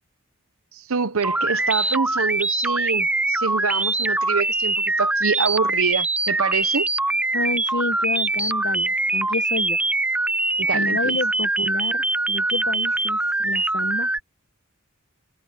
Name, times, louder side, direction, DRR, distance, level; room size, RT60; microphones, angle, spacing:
voice 1, 0.7-6.9 10.6-11.2, right 5 dB, 70° right, 0.8 m, -26 dB
sound 1, 1.2-14.2, right 2 dB, 5° right, 0.3 m, -23 dB
voice 2, 7.3-9.8 10.7-14.1, left 2 dB, 55° left, 1.4 m, -30 dB
head